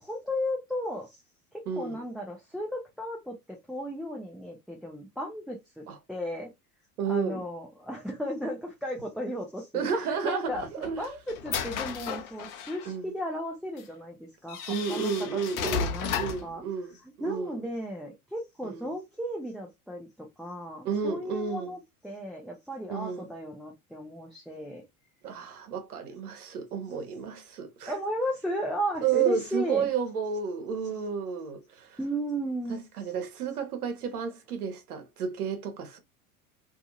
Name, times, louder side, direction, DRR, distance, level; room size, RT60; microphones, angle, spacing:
voice 1, 0.1-1.2 1.5-6.5 7.1-10.7 11.0-16.2 16.4-16.6 17.2-21.8 22.0-24.8 27.9-29.9 32.0-32.8, equal, ahead, 0.6 m, -35 dB
voice 2, 1.7-2.0 5.9-6.0 7.0-7.4 9.7-11.1 12.9-13.1 14.7-15.9 16.2-17.7 18.6-18.9 20.8-21.8 22.9-23.3 25.2-28.0 29.0-32.0 32.7-36.0, right 6 dB, 80° right, 0.9 m, -31 dB
sound 1, 10.5-12.9 13.8-13.9 14.5-16.5, left 7 dB, 45° left, 0.8 m, -33 dB
2.7 x 2.6 x 2.5 m
hypercardioid pair, 85°, 44 cm